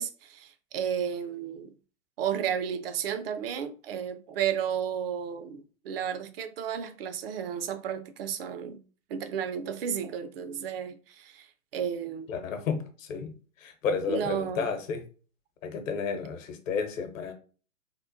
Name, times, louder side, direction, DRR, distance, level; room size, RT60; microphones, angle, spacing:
voice 1, 0.0-1.7 2.2-8.8 9.1-11.5 11.7-12.3 14.1-14.8, right 8 dB, 45° right, 0.4 m, -33 dB
voice 2, 12.3-15.0 15.6-17.3, left 5 dB, 65° left, 0.9 m, -32 dB
3.7 x 2.1 x 2.5 m
hypercardioid pair, 120°, 42 cm